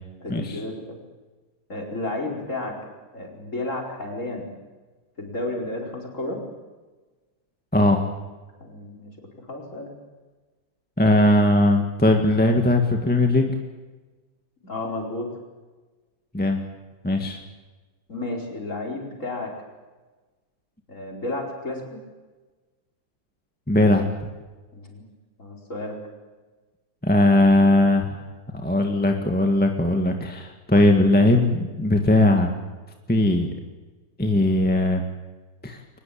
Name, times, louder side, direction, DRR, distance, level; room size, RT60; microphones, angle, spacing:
voice 1, 0.2-1.0 1.7-4.5 5.2-6.4 8.6-9.9 14.6-15.3 18.1-19.5 20.9-21.8 24.7-25.0 25.4-26.0, left 2 dB, 40° left, 0 dB, 5.2 m, -32 dB
voice 2, 7.7-8.0 11.0-13.5 16.3-16.6 17.0-17.4 23.7-24.1 27.0-28.2 28.6-32.5 33.1-33.5 34.2-35.0 35.6-35.8, left 1 dB, 5° left, 3 dB, 1.7 m, -19 dB
23.0 x 20.5 x 8.7 m, 1.3 s
omnidirectional pair, 1.9 m